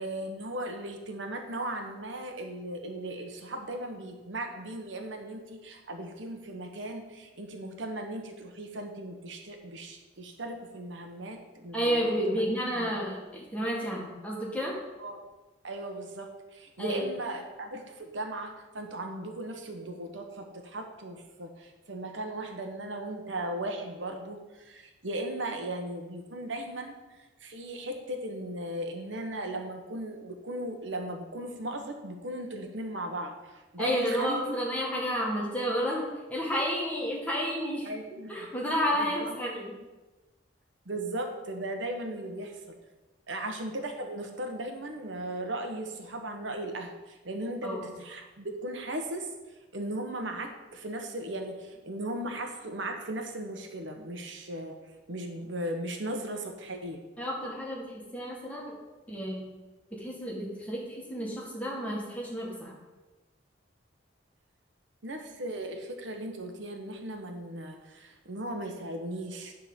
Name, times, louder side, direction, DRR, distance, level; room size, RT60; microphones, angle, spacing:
voice 1, 0.0-13.1 15.0-15.2 15.6-26.9 27.4-34.6 37.8-38.5 39.0-39.3 40.9-42.8 43.3-49.3 49.7-54.8 55.1-57.0 65.0-69.5, right 1 dB, 80° right, 4 dB, 1.1 m, -37 dB
voice 2, 11.7-14.7 16.8-17.0 33.8-36.0 36.3-37.9 38.3-39.7 47.6-47.9 57.2-58.7 59.1-59.4 59.9-62.7, equal, 5° left, -3 dB, 1.9 m, -31 dB
10.0 x 3.8 x 7.2 m, 1.2 s
head